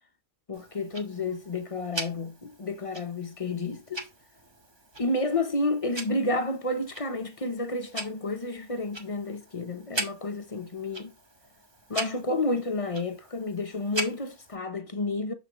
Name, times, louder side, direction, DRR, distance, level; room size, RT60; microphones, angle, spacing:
voice 1, 0.5-4.0 5.0-11.1 11.9-15.3, left 2 dB, 35° left, 0.7 m, -30 dB
Tick-tock, 0.5-14.5, right 2 dB, 20° right, 1.1 m, -41 dB
7.1 x 5.8 x 3.0 m
omnidirectional pair, 1.3 m